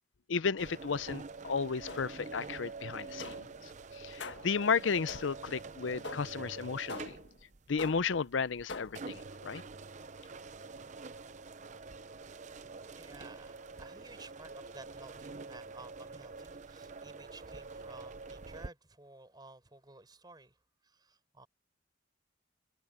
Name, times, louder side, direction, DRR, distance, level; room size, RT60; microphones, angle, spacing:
voice 1, 0.3-3.4 4.0-7.1 7.7-9.6, left 5 dB, 85° left, 0.6 m, -33 dB
sound 1, 0.6-18.7, right 4 dB, 40° right, 0.7 m, -47 dB
sound 2, 1.9-2.4 3.2-3.6 4.2-4.6 5.1-5.5 6.0-6.5 6.9-7.4 7.8-8.2 8.7-9.1, left 3 dB, 70° left, 1.6 m, -45 dB
voice 2, 13.0-21.5, right 2 dB, 20° right, 4.4 m, -54 dB
head